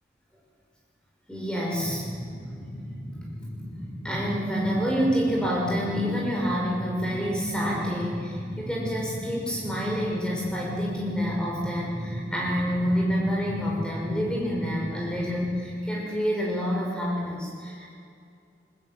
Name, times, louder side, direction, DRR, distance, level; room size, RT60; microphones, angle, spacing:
voice 1, 1.3-2.1 4.0-17.9, equal, 5° left, -3 dB, 6.0 m, -28 dB
sound 1, 1.7-15.5, equal, 70° left, 7.5 m, -37 dB
21.5 x 19.5 x 7.7 m, 2.4 s
head